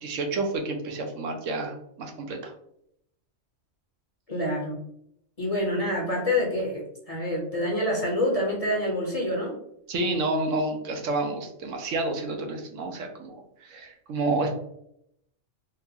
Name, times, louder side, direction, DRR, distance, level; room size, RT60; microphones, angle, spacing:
voice 1, 0.0-2.5 9.9-14.5, right 2 dB, 80° right, 3 dB, 1.0 m, -29 dB
voice 2, 4.3-4.8 5.4-9.6, left 1 dB, 35° left, -2 dB, 0.7 m, -27 dB
3.7 x 2.3 x 2.7 m, 0.73 s
omnidirectional pair, 1.3 m